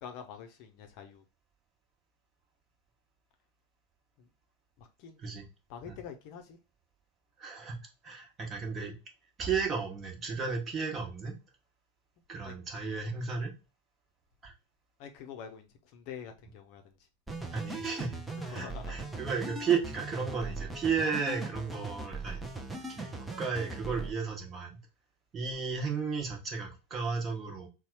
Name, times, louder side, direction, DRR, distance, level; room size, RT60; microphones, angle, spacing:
voice 1, 0.0-1.2 4.2-4.3 4.8-5.2 5.7-6.6 12.4-12.5 15.0-17.0 18.4-18.9 21.7-21.8, left 7 dB, 45° left, 0.7 m, -46 dB
voice 2, 7.4-8.9 9.4-11.4 12.3-13.5 14.4-14.5 17.5-18.2 18.5-22.4 23.0-23.1 23.4-24.8 25.3-27.7, right 5 dB, 25° right, 1.2 m, -34 dB
sound 1, 17.3-24.1, right 3 dB, 5° right, 0.7 m, -39 dB
4.1 x 2.3 x 4.6 m
figure-of-eight pair, 90°, 0 cm